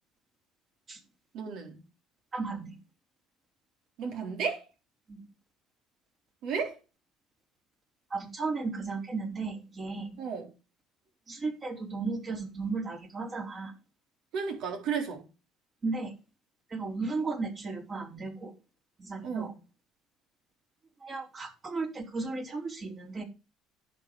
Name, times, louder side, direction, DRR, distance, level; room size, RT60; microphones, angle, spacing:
voice 1, 1.3-1.8 4.0-4.6 6.4-6.8 10.2-10.5 14.3-15.2 19.2-19.6, right 6 dB, 65° right, 4.0 m, -33 dB
voice 2, 2.3-2.7 5.1-5.2 8.1-10.2 11.3-13.7 15.8-16.1 16.7-18.5 19.0-19.5 21.0-23.2, right 3 dB, 35° right, 4.0 m, -35 dB
10.5 x 7.3 x 4.9 m
hypercardioid pair, 70°, 0 cm